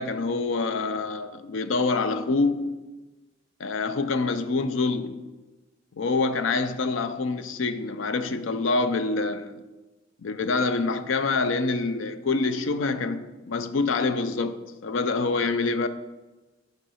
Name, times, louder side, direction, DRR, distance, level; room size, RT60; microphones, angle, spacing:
voice 1, 0.0-2.8 3.6-5.3 6.0-9.6 10.2-15.9, left 3 dB, 90° left, 0.5 m, -26 dB
6.4 x 5.2 x 5.6 m
head